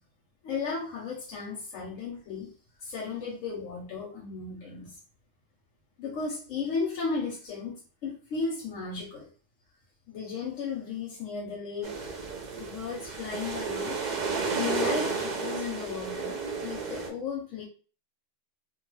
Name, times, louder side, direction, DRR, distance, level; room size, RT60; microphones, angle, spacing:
voice 1, 0.4-2.5 2.8-5.0 6.0-9.3 10.1-12.1 12.5-14.0 14.3-17.6, left 5 dB, 90° left, 0 dB, 1.0 m, -35 dB
sound 1, 11.8-17.1, right 4 dB, 55° right, 0.5 m, -32 dB
2.4 x 2.3 x 3.1 m, 0.38 s
omnidirectional pair, 1.3 m